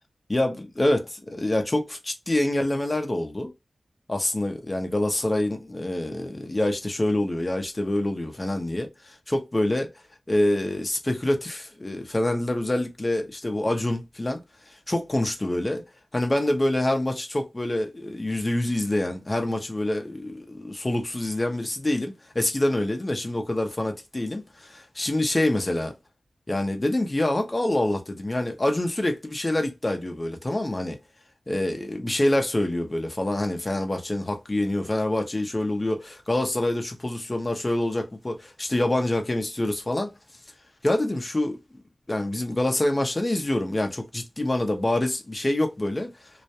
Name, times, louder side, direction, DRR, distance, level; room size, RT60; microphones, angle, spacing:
voice 1, 0.3-3.5 4.1-9.9 10.3-15.8 16.1-25.9 26.5-31.0 31.5-40.1 40.8-41.6 42.1-46.3, left 1 dB, 25° left, 0.6 m, -26 dB
2.4 x 2.1 x 2.8 m
wide cardioid pair, 95°, 0 cm